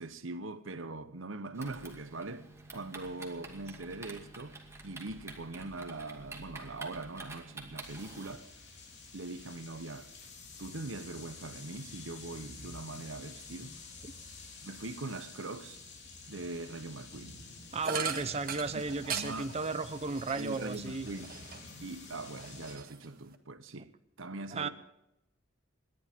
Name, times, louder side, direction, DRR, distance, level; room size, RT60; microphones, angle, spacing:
voice 1, 0.0-4.6 4.8-8.5 9.1-10.1 10.6-13.8 14.6-15.8 16.3-17.3 18.7-19.5 20.3-21.3 21.8-24.7, right 2 dB, 80° right, 1.1 m, -42 dB
Typing, 1.5-8.4, right 2 dB, 15° right, 2.3 m, -48 dB
sound 1, 7.8-22.8, left 3 dB, 60° left, 3.4 m, -50 dB
voice 2, 17.7-21.1 24.5-24.7, right 3 dB, 30° right, 0.6 m, -34 dB
sound 2, 17.8-21.8 22.2-23.4, right 6 dB, 50° right, 1.6 m, -40 dB
28.5 x 11.0 x 3.7 m
head